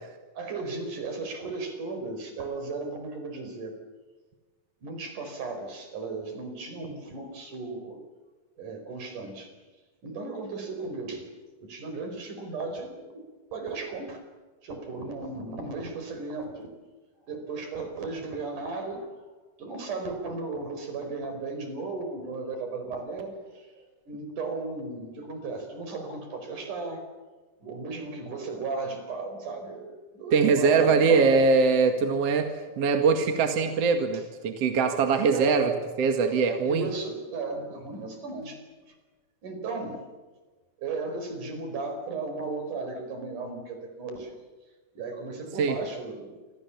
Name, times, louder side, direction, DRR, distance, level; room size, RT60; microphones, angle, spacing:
voice 1, 0.3-3.8 4.8-8.0 8.6-9.5 10.0-11.3 11.6-14.2 14.6-16.7 17.2-19.3 19.6-27.0 27.6-31.5 35.3-35.7 36.6-39.0 39.4-40.1 40.8-44.4 45.0-46.4, right 3 dB, 75° right, 6 dB, 6.2 m, -35 dB
voice 2, 30.3-35.7 36.0-36.9 45.6-45.8, right 5 dB, 55° right, 5 dB, 2.9 m, -22 dB
28.5 x 26.0 x 7.2 m, 1.3 s
omnidirectional pair, 3.6 m